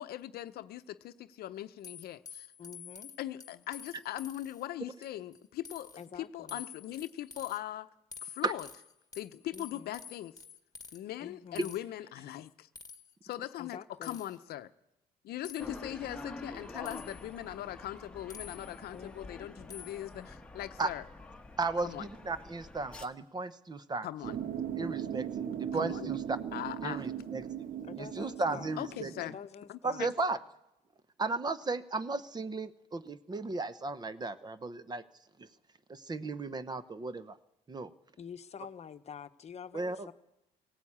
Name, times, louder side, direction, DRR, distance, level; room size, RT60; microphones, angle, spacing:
voice 1, 0.0-2.5 3.2-5.9 6.2-7.9 8.2-8.7 9.1-10.3 10.9-12.7 13.2-14.7 15.2-21.0 21.8-22.1 24.0-24.3 25.7-26.1 26.5-27.1 28.8-29.4 29.7-30.1, left 13 dB, 70° left, 0.8 m, -40 dB
sound 1, 1.8-4.6 5.0-5.4 5.6-6.0 6.5-7.6 8.1-11.0 11.6-11.8 12.8-13.1 14.0-14.4 15.4-15.7 16.9-17.3 18.3-18.9 19.7-20.1, left 6 dB, 20° left, 1.6 m, -49 dB
voice 2, 2.6-3.1 6.0-6.6 9.5-9.9 11.2-11.8 13.6-14.2 18.9-19.5 27.8-28.8 29.2-30.1 38.2-40.1, left 7 dB, 40° left, 1.0 m, -47 dB
sound 2, 15.6-23.0, left 2 dB, 5° left, 1.4 m, -47 dB
voice 3, 21.6-24.1 24.8-26.4 26.8-27.6 28.0-29.1 29.8-30.4 31.2-35.0 35.4-35.5 35.9-37.4 37.7-37.9 39.7-40.1, right 3 dB, 25° right, 0.9 m, -35 dB
sound 3, 24.2-29.2, right 9 dB, 55° right, 1.3 m, -38 dB
18.0 x 17.0 x 8.6 m
cardioid pair, 110°, 17 cm